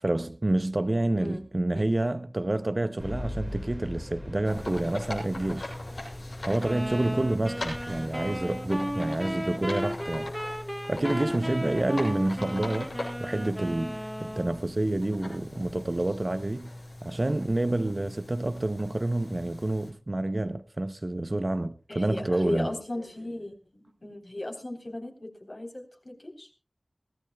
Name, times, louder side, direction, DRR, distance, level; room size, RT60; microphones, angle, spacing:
voice 1, 0.0-5.7 6.5-10.3 10.9-16.7 17.0-22.7, right 1 dB, 45° right, 0.7 m, -28 dB
sound 1, 3.0-9.0, left 1 dB, 15° left, 2.0 m, -41 dB
sound 2, 4.4-19.9, left 1 dB, 90° left, 6.9 m, -40 dB
sound 3, 6.6-14.6, equal, 5° right, 1.2 m, -35 dB
voice 2, 21.9-26.5, left 1 dB, 50° left, 3.7 m, -37 dB
22.5 x 16.0 x 2.3 m
wide cardioid pair, 45°, 0 cm